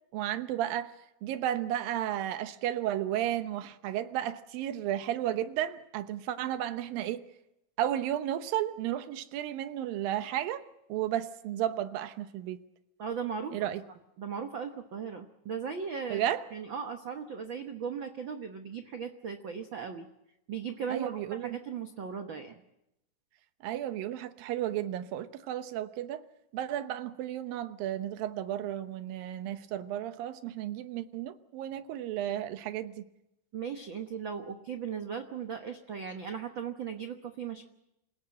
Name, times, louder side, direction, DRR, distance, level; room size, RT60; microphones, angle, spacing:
voice 1, 0.1-0.9 1.2-7.2 7.8-12.6 13.5-13.8 16.1-16.4 20.9-21.6 23.6-26.2 26.5-33.1, right 12 dB, 85° right, 11 dB, 2.8 m, -33 dB
voice 2, 13.0-13.7 14.2-16.2 16.5-20.1 20.5-22.6 33.5-37.6, right 7 dB, 70° right, 6 dB, 1.1 m, -37 dB
27.5 x 16.5 x 7.7 m, 0.87 s
omnidirectional pair, 4.0 m